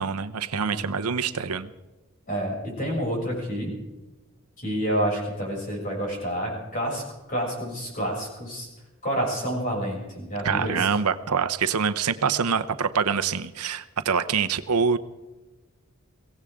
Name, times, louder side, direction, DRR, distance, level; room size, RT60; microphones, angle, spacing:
voice 1, 0.0-1.7 10.4-15.0, right 6 dB, 90° right, 10 dB, 0.8 m, -25 dB
voice 2, 2.3-3.7 4.6-7.0 7.3-8.7 9.0-10.9, equal, 40° left, -2 dB, 7.1 m, -28 dB
23.0 x 17.0 x 3.7 m, 1.1 s
head